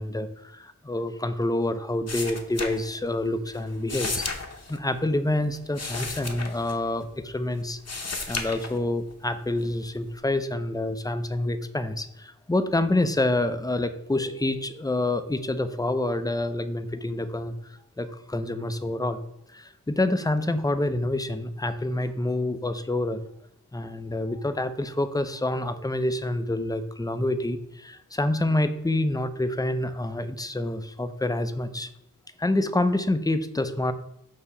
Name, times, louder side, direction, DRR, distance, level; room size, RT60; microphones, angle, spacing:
voice 1, 0.0-4.3 4.7-7.8 8.3-19.2 19.5-23.2 23.7-31.9 32.4-33.9, left 1 dB, 10° left, 10 dB, 0.5 m, -27 dB
sound 1, 2.1-3.3 3.5-7.3 7.6-9.1 9.6-10.2, left 3 dB, 45° left, 0.8 m, -34 dB
6.9 x 2.8 x 5.4 m, 0.76 s
wide cardioid pair, 60°, 36 cm